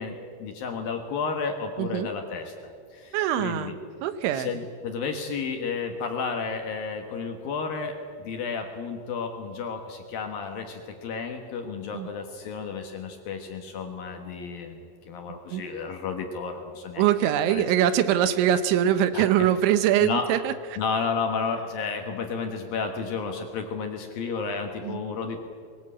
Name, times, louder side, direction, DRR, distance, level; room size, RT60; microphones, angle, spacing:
voice 1, 0.0-3.7 4.3-17.0 17.5-17.9 19.1-19.5 20.0-20.3 20.8-25.4, left 5 dB, 65° left, 4 dB, 2.6 m, -32 dB
voice 2, 1.8-2.1 3.1-3.7 4.0-4.5 11.9-12.1 15.5-15.6 17.0-20.5 24.8-25.0, right 10 dB, 80° right, 12 dB, 3.3 m, -23 dB
22.5 x 18.5 x 8.7 m, 2.3 s
omnidirectional pair, 5.4 m